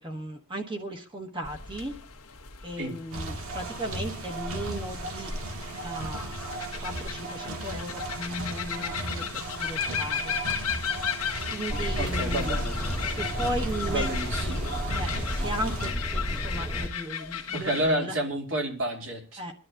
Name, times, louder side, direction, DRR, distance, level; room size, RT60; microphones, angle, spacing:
voice 1, 0.0-1.9 2.6-5.3 5.8-10.4 11.5-12.6 13.0-14.1 14.4-14.6 14.9-18.1 19.4-19.5, right 1 dB, 20° right, 2 dB, 1.3 m, -36 dB
sound 1, 1.4-17.9, left 7 dB, 90° left, 1.4 m, -36 dB
sound 2, 3.1-15.9, right 2 dB, 75° right, 1.8 m, -36 dB
sound 3, 11.7-16.9, equal, ahead, 1.2 m, -32 dB
voice 2, 12.0-12.8 13.9-14.7 17.5-19.4, right 1 dB, 55° right, 1 dB, 2.6 m, -30 dB
26.5 x 11.0 x 2.6 m, 0.32 s
head